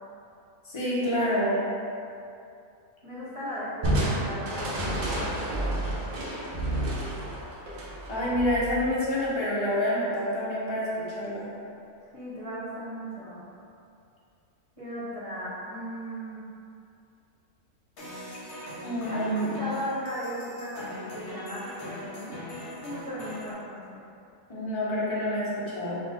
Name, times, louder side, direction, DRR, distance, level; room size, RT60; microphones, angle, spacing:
voice 1, 0.6-1.6 8.1-11.5 18.8-19.4 24.5-26.0, equal, 25° left, -7 dB, 0.7 m, -27 dB
voice 2, 3.0-5.0 12.1-13.4 14.8-16.4 19.1-22.3 22.7-24.0, equal, 30° right, -9 dB, 0.9 m, -36 dB
Crushing, 3.8-9.2, right 1 dB, 50° right, 0.6 m, -30 dB
sound 1, 18.0-23.5, equal, 60° left, 1.1 m, -41 dB
3.8 x 2.5 x 4.3 m, 2.6 s
omnidirectional pair, 1.4 m